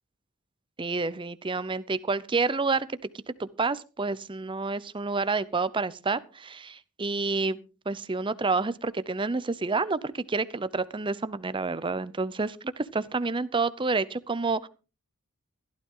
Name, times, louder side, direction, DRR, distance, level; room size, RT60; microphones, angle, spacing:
voice 1, 0.8-2.9 3.1-7.6 7.9-14.7, right 3 dB, 25° right, 16 dB, 0.6 m, -29 dB
15.0 x 12.0 x 3.8 m, 0.33 s
head